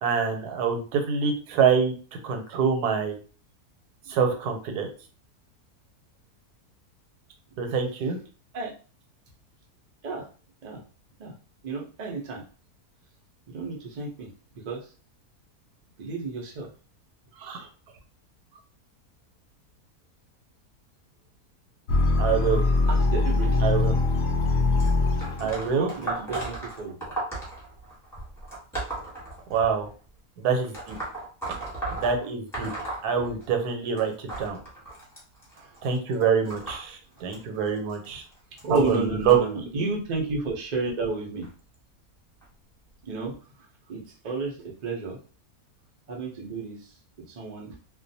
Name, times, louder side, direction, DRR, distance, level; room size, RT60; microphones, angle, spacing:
voice 1, 0.0-1.9 2.2-3.2 4.1-4.9 7.6-8.2 17.4-17.7 22.2-22.6 23.6-24.0 25.4-25.9 29.5-29.9 30.4-31.0 31.9-32.7 33.0-34.6 35.8-38.2 38.7-39.4 39.7-39.9, right 6 dB, 85° right, 5 dB, 1.2 m, -25 dB
voice 2, 11.6-12.4 13.5-14.3 14.6-14.9 16.0-16.7 17.6-17.7 22.9-23.7 25.4-27.0 35.5-35.8 38.6-41.5 43.0-43.4 43.9-45.2 46.1-46.9 47.3-47.8, right 3 dB, 65° right, 0 dB, 0.4 m, -32 dB
sound 1, 21.9-25.7, left 3 dB, 70° left, 0.6 m, -22 dB
sound 2, 24.8-29.9 30.7-33.7 34.0-39.3 40.1-40.4 41.4-41.5 42.4-42.5 43.2-43.3, right 2 dB, ahead, 0.9 m, -36 dB
2.4 x 2.2 x 2.6 m, 0.38 s
omnidirectional pair, 1.6 m